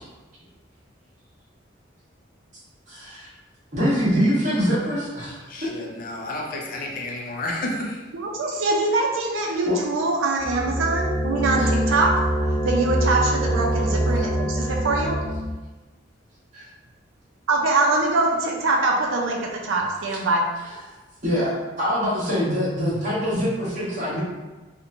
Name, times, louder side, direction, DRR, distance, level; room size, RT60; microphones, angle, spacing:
voice 1, 2.9-3.3 3.7-5.4 9.6-9.8 11.6-11.7 16.5-16.7 21.2-24.2, equal, 40° right, -9 dB, 1.0 m, -24 dB
voice 2, 5.5-8.0, left 1 dB, 45° left, -1 dB, 0.4 m, -31 dB
voice 3, 8.1-12.2 12.6-15.2 17.5-20.5, right 2 dB, 90° right, 0 dB, 0.4 m, -23 dB
sound 1, 10.4-15.5, right 1 dB, 10° right, 0.5 m, -24 dB
2.9 x 2.1 x 2.5 m, 1.2 s
head